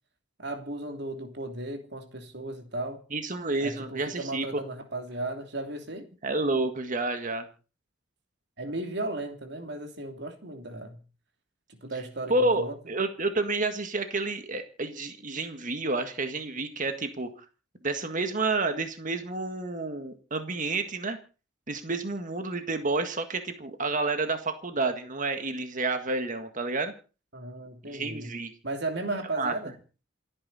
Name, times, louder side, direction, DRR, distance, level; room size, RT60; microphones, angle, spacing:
voice 1, 0.4-3.0 3.6-6.1 8.6-11.0 11.8-12.8 27.3-28.3 28.6-29.7, right 2 dB, 60° right, 3.0 m, -35 dB
voice 2, 3.1-4.6 6.2-7.5 12.3-17.3 17.8-21.2 21.7-26.9 27.9-28.5 29.4-29.6, right 3 dB, 40° right, 1.8 m, -29 dB
28.0 x 9.9 x 4.2 m
head